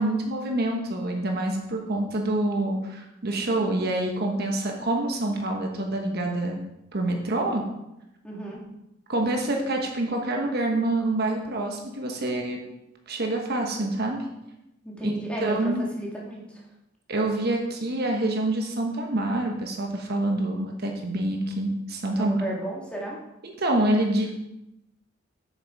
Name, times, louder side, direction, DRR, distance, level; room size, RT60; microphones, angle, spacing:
voice 1, 0.0-6.6 6.9-7.6 9.1-12.6 13.1-14.2 15.0-15.2 15.4-15.8 17.1-22.4 23.4-24.3, right 1 dB, 55° right, 2 dB, 1.2 m, -26 dB
voice 2, 8.2-8.6 14.8-16.6 22.1-23.2, right 1 dB, 5° left, -3 dB, 2.0 m, -34 dB
7.7 x 6.8 x 4.7 m, 0.88 s
head